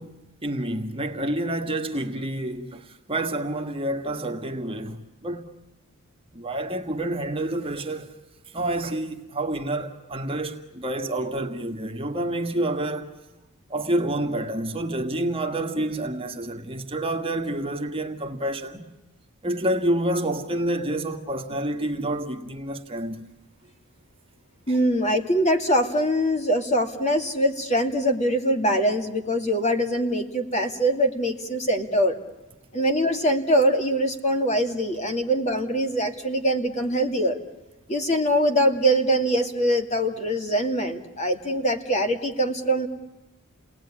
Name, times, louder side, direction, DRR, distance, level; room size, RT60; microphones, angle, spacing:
voice 1, 0.0-5.5 6.3-8.1 8.5-13.1 13.7-18.9 19.4-23.3 24.7-24.8, right 1 dB, 25° right, 1.7 m, -28 dB
voice 2, 24.7-32.2 32.7-37.4 37.9-42.9, equal, 30° left, 2.5 m, -23 dB
30.0 x 19.5 x 10.0 m
head